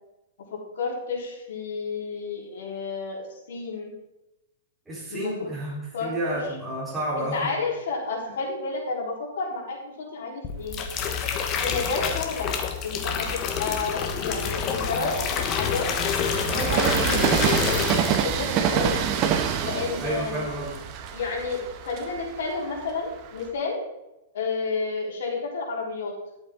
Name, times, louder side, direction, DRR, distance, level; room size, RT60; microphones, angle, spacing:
voice 1, 0.5-3.2 3.5-3.9 5.1-5.5 5.9-6.4 7.2-10.8 11.6-12.5 12.8-15.9 16.5-17.7 18.2-19.0 19.6-20.5 21.1-23.8 24.3-26.1, left 4 dB, 75° left, -2 dB, 3.6 m, -31 dB
voice 2, 4.9-7.5 8.3-8.4 20.0-20.9, right 1 dB, 5° right, -8 dB, 3.5 m, -30 dB
sound 1, 10.4-18.5 18.8-19.1, left 7 dB, 25° left, 1.0 m, -28 dB
Train, 10.6-12.3 12.9-23.5, right 8 dB, 30° right, 0.9 m, -28 dB
12.0 x 8.0 x 3.6 m, 0.92 s
supercardioid pair, 160°, 0 cm